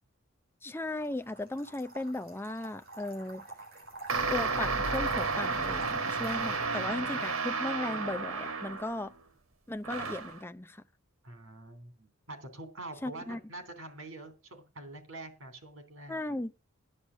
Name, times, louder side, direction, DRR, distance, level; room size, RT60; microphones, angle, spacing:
voice 1, 0.6-3.4 4.3-9.1 9.7-10.8 13.0-13.4 16.1-16.5, left 1 dB, 10° left, 0.5 m, -36 dB
sound 1, 0.9-6.7, right 2 dB, 45° right, 6.7 m, -48 dB
sound 2, 4.1-9.1 9.8-10.4, right 4 dB, 90° right, 1.5 m, -32 dB
voice 2, 6.1-7.3 11.2-16.4, right 2 dB, 65° right, 3.1 m, -46 dB
10.0 x 8.0 x 6.2 m
head